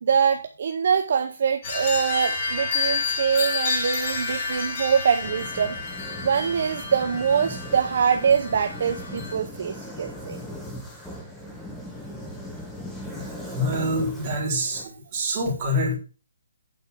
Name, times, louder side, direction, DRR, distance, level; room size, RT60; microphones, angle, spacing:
voice 1, 0.0-5.7 6.2-10.4, right 7 dB, 40° right, 7 dB, 0.7 m, -24 dB
sound 1, 1.6-9.3, left 4 dB, 25° left, 3.2 m, -30 dB
sound 2, 5.2-14.8, left 1 dB, 5° left, 1.0 m, -39 dB
voice 2, 13.5-14.8 15.1-15.9, equal, 20° right, -4 dB, 3.4 m, -25 dB
8.6 x 4.5 x 6.6 m, 0.36 s
hypercardioid pair, 175°, 0 cm